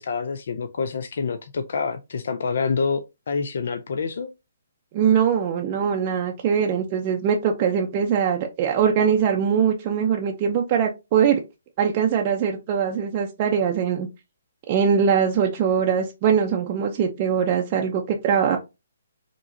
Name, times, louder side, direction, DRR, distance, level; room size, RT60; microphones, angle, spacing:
voice 1, 0.0-4.3, left 5 dB, 65° left, 0.4 m, -27 dB
voice 2, 4.9-11.4 11.8-14.1 14.7-18.6, right 7 dB, 30° right, 0.5 m, -22 dB
4.7 x 3.0 x 2.6 m
hypercardioid pair, 155°, 0 cm